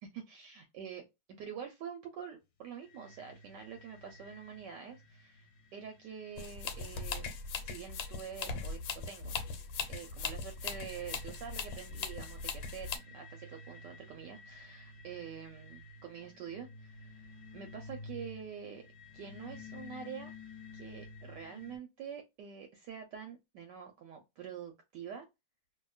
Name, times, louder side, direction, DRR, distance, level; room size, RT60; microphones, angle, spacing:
voice 1, 0.0-1.0 1.4-5.5 5.7-7.4 7.6-8.8 9.1-9.4 9.8-12.9 13.1-17.3 17.5-18.8 19.1-20.3 20.7-25.3, right 7 dB, 70° right, 5 dB, 1.1 m, -46 dB
sound 1, 2.8-21.8, left 2 dB, 55° left, 1.1 m, -53 dB
sound 2, 6.4-13.0, left 5 dB, 85° left, 1.4 m, -39 dB
2.8 x 2.6 x 2.3 m, 0.22 s
omnidirectional pair, 2.1 m